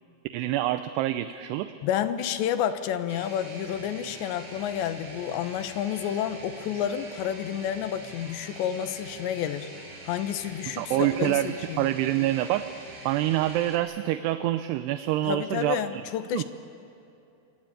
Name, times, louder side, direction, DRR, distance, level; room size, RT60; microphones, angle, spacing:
voice 1, 0.3-1.7 10.8-12.6 13.1-16.0 16.3-16.4, right 14 dB, 80° right, 10 dB, 2.6 m, -26 dB
voice 2, 1.8-9.7 10.0-11.9 15.3-16.4, left 10 dB, 80° left, 10 dB, 3.2 m, -30 dB
sound 1, 3.1-13.8, right 2 dB, 25° right, 4.1 m, -44 dB
27.0 x 23.0 x 9.1 m, 2.7 s
omnidirectional pair, 5.1 m